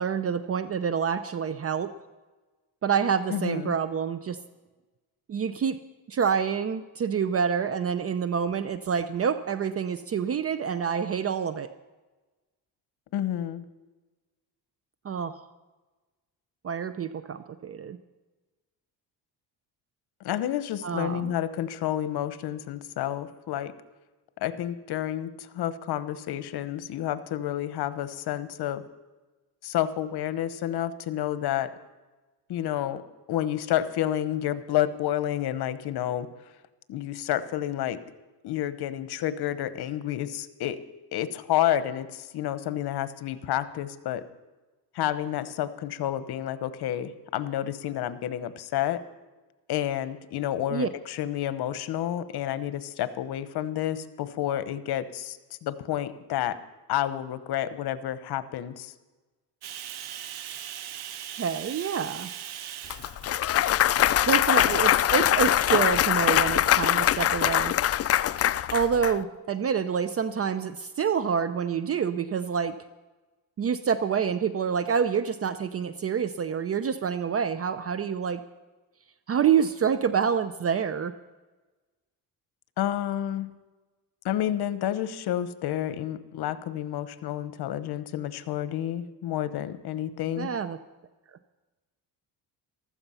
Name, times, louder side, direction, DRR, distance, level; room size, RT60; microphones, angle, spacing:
voice 1, 0.0-1.9 2.8-4.4 5.3-5.8 6.1-11.7 15.0-15.4 16.6-18.0 20.8-21.4 50.7-50.9 61.4-62.3 64.2-67.9 68.7-72.8 73.6-78.4 79.3-81.1 90.4-90.8, right 7 dB, 35° right, 12 dB, 0.6 m, -27 dB
voice 2, 3.3-3.7 13.1-13.6 20.2-23.7 24.4-28.8 29.6-31.7 32.5-33.0 33.3-36.3 36.9-38.0 38.4-40.8 41.1-44.2 44.9-49.0 49.7-56.6 56.9-58.9 82.8-83.5 84.2-90.5, left 11 dB, 65° left, 13 dB, 1.0 m, -30 dB
Bathtub (filling or washing), 59.6-65.0 65.4-65.8 66.4-67.2, right 10 dB, 70° right, 1.1 m, -41 dB
Clapping / Cheering / Applause, 62.9-69.1, left 12 dB, 40° left, 0.4 m, -23 dB
15.0 x 13.0 x 5.7 m, 1.2 s
cardioid pair, 115°, 41 cm